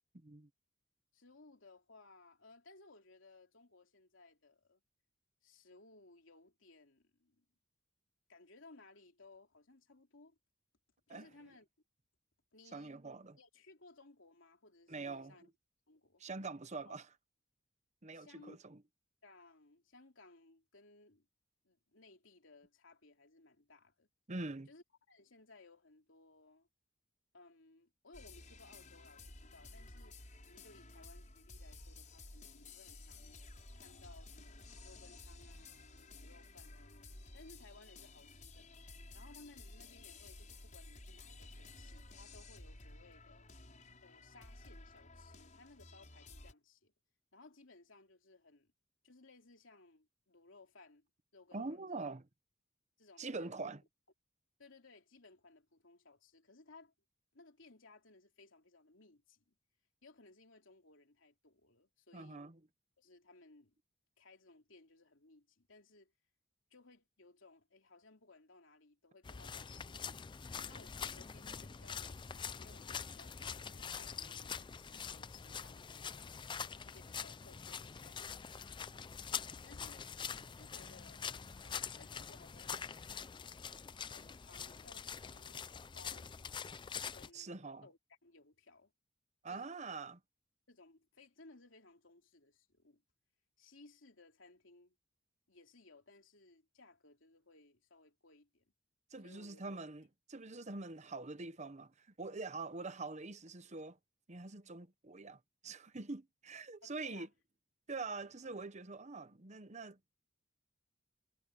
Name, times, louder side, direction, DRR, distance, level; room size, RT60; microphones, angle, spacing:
voice 1, 0.1-0.5 11.1-11.3 12.7-13.4 14.9-15.4 16.2-17.1 18.0-18.8 24.3-24.7 51.5-52.2 53.2-53.8 62.1-62.6 87.3-87.9 89.4-90.2 99.1-104.0 104.3-107.3 107.9-110.1, right 3 dB, 35° right, 1.0 m, -44 dB
voice 2, 1.1-4.8 5.4-7.4 8.3-10.4 11.1-11.7 12.5-13.0 13.4-15.4 15.9-16.2 16.8-17.0 18.1-18.6 19.2-21.3 21.6-24.1 24.7-26.7 27.3-30.2 30.4-33.5 33.7-37.0 37.3-38.8 39.1-43.5 44.0-46.9 47.3-48.7 49.0-51.1 51.3-52.0 53.0-53.6 54.6-56.9 57.3-59.5 60.0-62.4 63.0-63.8 64.2-66.1 66.7-70.2 70.7-76.3 76.8-78.2 79.6-80.1 80.6-81.3 81.6-82.9 84.0-85.7 85.9-86.6 87.1-88.9 89.5-89.9 90.7-93.0 93.6-94.9 95.5-98.6 99.2-99.6 106.8-107.3, left 3 dB, 85° left, 3.0 m, -61 dB
sound 1, 28.1-46.5, left 2 dB, 40° left, 5.7 m, -54 dB
Footsteps Muddy B, 69.2-87.3, left 6 dB, 25° left, 0.4 m, -45 dB
head